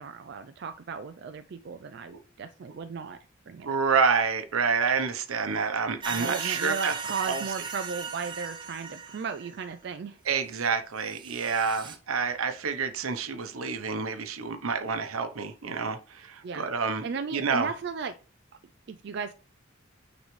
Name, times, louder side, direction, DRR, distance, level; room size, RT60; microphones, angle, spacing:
voice 1, 0.0-3.2 3.5-3.8 6.2-10.2 16.4-16.7 17.0-18.1 18.9-19.3, right 5 dB, 50° right, 0.4 m, -35 dB
voice 2, 3.6-6.9 7.3-7.4 10.2-17.7, right 5 dB, 85° right, 0.9 m, -28 dB
sound 1, 6.0-9.7 10.6-10.7 11.1-12.0, right 5 dB, 20° right, 0.7 m, -37 dB
9.2 x 3.9 x 3.2 m
head